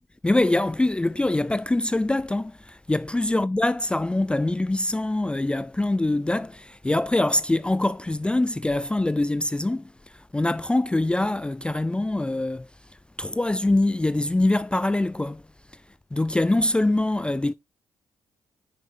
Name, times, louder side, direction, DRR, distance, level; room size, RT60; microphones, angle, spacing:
voice 1, 0.2-12.7 13.2-15.4 16.1-17.5, left 2 dB, 10° left, 0.4 m, -24 dB
9.3 x 6.3 x 3.3 m
hypercardioid pair, 40°, 9 cm